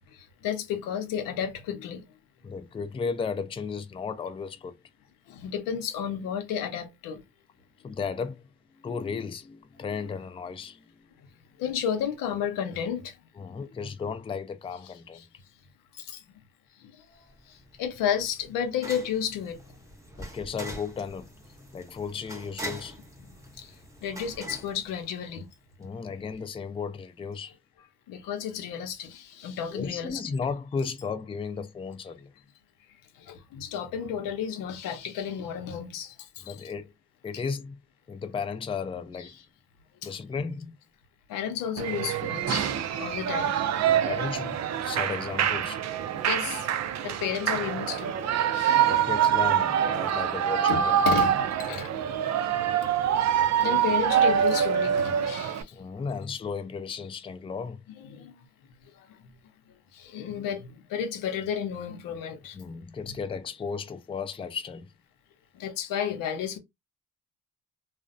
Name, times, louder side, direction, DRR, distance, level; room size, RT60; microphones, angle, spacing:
voice 1, 0.4-2.0 5.3-7.2 11.6-13.1 15.9-16.2 17.1-19.6 23.6-23.7 24.0-25.5 28.1-30.2 33.2-36.6 40.0-40.1 41.3-43.9 46.2-46.7 47.0-48.9 50.7-51.9 52.5-52.9 53.6-55.8 58.1-58.4 59.9-62.6 65.6-66.6, left 8 dB, 85° left, 0.6 m, -32 dB
voice 2, 2.4-4.8 7.8-8.5 8.8-11.1 13.3-15.2 20.2-21.3 21.7-23.0 25.8-27.6 29.7-32.3 36.4-36.9 37.2-37.8 38.1-39.4 40.0-40.8 43.8-45.8 48.9-51.0 55.7-57.8 62.5-64.9, left 5 dB, 15° left, 0.4 m, -35 dB
sound 1, 17.3-25.6, equal, 10° right, 0.8 m, -43 dB
Shout / Cheering, 41.8-55.6, right 9 dB, 55° right, 0.5 m, -25 dB
2.5 x 2.0 x 2.4 m
supercardioid pair, 65°, 32 cm